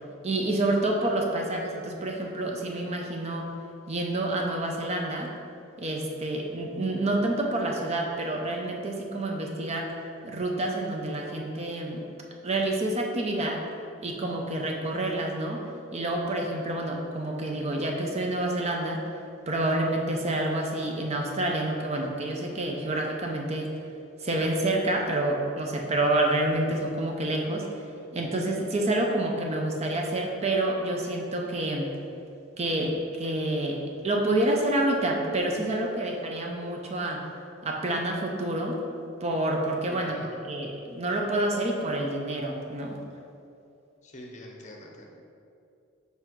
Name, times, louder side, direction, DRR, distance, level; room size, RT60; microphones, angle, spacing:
voice 1, 0.2-3.5 3.9-5.3 5.8-9.9 10.2-12.0 12.4-13.6 14.0-15.6 15.9-19.0 19.5-23.7 24.2-27.7 28.1-31.9 32.6-37.2 37.6-38.8 39.2-43.0, right 1 dB, 30° right, 1 dB, 0.6 m, -28 dB
voice 2, 39.8-40.4 44.0-45.1, equal, 35° left, 0 dB, 0.7 m, -45 dB
5.5 x 4.0 x 4.5 m, 2.6 s
head